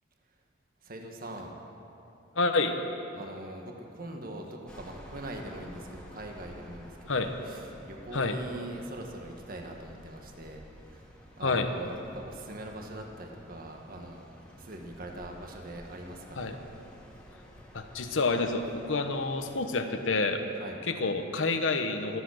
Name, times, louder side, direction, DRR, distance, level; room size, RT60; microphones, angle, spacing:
voice 1, 0.8-1.5 3.1-11.0 11.4-14.3 14.6-16.5 20.6-20.8, right 1 dB, 50° right, 2 dB, 1.6 m, -42 dB
voice 2, 2.3-2.8 7.1-7.3 8.1-8.4 11.4-11.7 16.4-16.6 17.7-20.4 20.9-22.2, left 3 dB, 80° left, 5 dB, 1.1 m, -28 dB
sound 1, 4.7-19.6, equal, 5° left, 2.2 m, -51 dB
24.5 x 8.4 x 6.5 m, 2.9 s
head